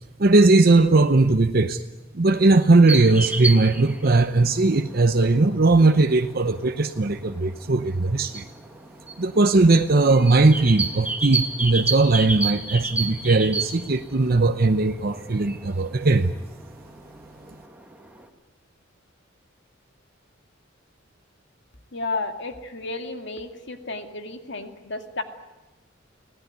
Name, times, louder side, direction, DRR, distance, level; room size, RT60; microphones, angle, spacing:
voice 1, 0.2-1.8 2.1-8.4 9.2-16.3, right 3 dB, 50° right, 0.8 m, -19 dB
sound 1, 2.9-18.3, right 3 dB, 10° right, 2.1 m, -33 dB
voice 2, 21.9-25.2, left 3 dB, 65° left, 2.3 m, -32 dB
25.5 x 17.5 x 9.5 m
head